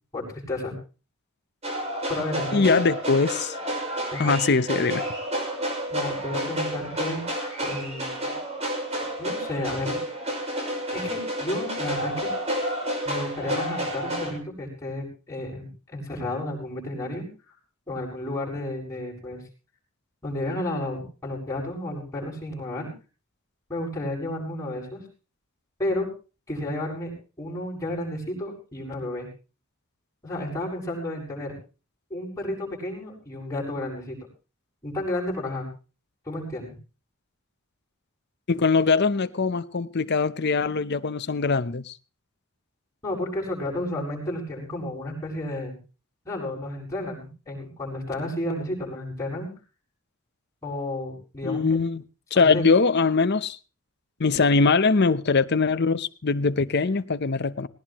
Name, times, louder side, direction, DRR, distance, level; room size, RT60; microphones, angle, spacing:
voice 1, 0.1-0.7 2.1-2.8 4.1-4.4 5.9-7.2 7.6-8.4 9.2-10.0 10.9-12.3 13.0-17.3 17.9-19.4 20.2-22.9 23.7-25.0 25.8-26.1 26.5-29.3 30.2-31.5 32.1-34.2 34.8-35.7 36.3-36.7 43.0-45.8 46.2-49.5 50.6-51.8 52.3-52.6, left 1 dB, 15° left, 7.6 m, -32 dB
sound 1, 1.6-14.3, equal, 30° right, 5.8 m, -30 dB
voice 2, 2.5-3.5 4.2-5.0 38.5-41.9 51.4-52.0 52.3-53.6 54.2-57.7, left 4 dB, 50° left, 0.8 m, -22 dB
19.0 x 19.0 x 3.1 m
head